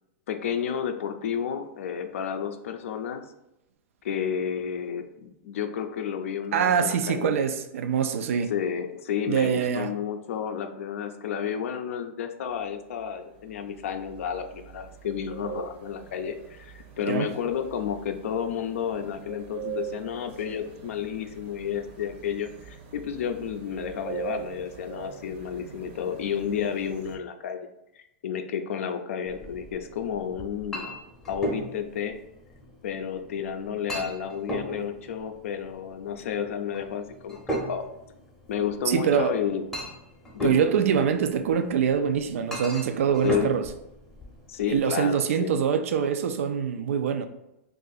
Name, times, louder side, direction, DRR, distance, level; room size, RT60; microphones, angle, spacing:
voice 1, 0.3-3.2 4.0-7.4 8.5-30.9 31.3-32.2 32.8-37.8 38.5-39.7 40.3-40.6 43.2-43.5 44.5-45.6, left 8 dB, 85° left, 6 dB, 0.4 m, -31 dB
voice 2, 6.5-8.5 9.3-9.9 17.1-17.3 38.9-39.3 40.4-43.7 44.7-47.3, right 7 dB, 90° right, 9 dB, 0.3 m, -24 dB
sound 1, 12.5-27.2, right 10 dB, 50° right, 0.6 m, -43 dB
Chink clink, 29.3-44.8, right 1 dB, 5° left, 0.6 m, -38 dB
2.6 x 2.4 x 3.9 m, 0.87 s
supercardioid pair, 155°, 7 cm